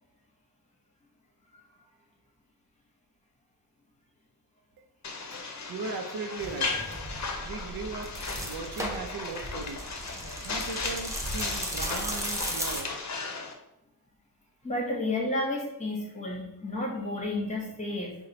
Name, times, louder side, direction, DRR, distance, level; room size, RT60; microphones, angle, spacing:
sound 1, 5.0-13.5, left 4 dB, 50° left, 0.6 m, -36 dB
voice 1, 5.7-6.7 7.3-12.9, right 4 dB, 85° right, 6 dB, 0.5 m, -38 dB
sound 2, 6.4-12.8, right 1 dB, 10° right, 0.5 m, -36 dB
voice 2, 14.6-18.2, left 2 dB, 20° left, -3 dB, 1.0 m, -31 dB
4.0 x 2.2 x 4.1 m, 0.82 s
wide cardioid pair, 145°, 36 cm